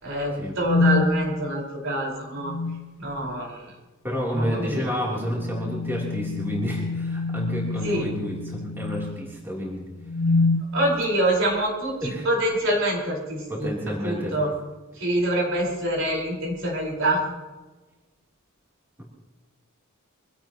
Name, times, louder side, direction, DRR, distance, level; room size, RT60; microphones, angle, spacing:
voice 1, 0.0-2.5 3.0-3.6 4.3-4.9 7.8-8.1 10.7-13.7 14.0-14.5 15.0-17.2, right 1 dB, 60° right, -2 dB, 5.0 m, -25 dB
sound 1, 0.6-1.1 2.4-2.9 5.1-9.3 10.0-10.7, left 3 dB, 60° left, 0.8 m, -26 dB
voice 2, 4.0-9.9 12.0-12.3 13.5-14.3, equal, 10° right, -4 dB, 3.4 m, -30 dB
24.5 x 16.5 x 3.0 m, 1.2 s
head